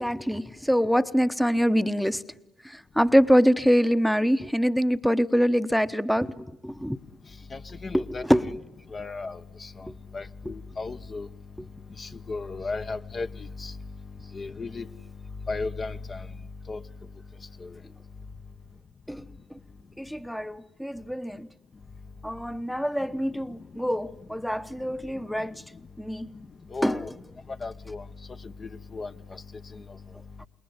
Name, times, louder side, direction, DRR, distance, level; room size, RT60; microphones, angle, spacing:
voice 1, 0.0-2.2 2.6-7.0 7.9-8.6 19.1-19.2 20.0-21.5 22.2-25.5 26.0-26.3 26.8-27.1, equal, ahead, 1.0 m, -24 dB
voice 2, 7.5-8.3 8.9-9.9 10.1-11.3 12.0-13.8 14.3-14.9 15.5-16.3 16.7-16.8 17.6-17.8 26.7-27.1 27.6-28.0 28.4-29.4 29.7-29.8, left 3 dB, 35° left, 1.0 m, -35 dB
27.5 x 21.5 x 9.6 m
hypercardioid pair, 50°, 0 cm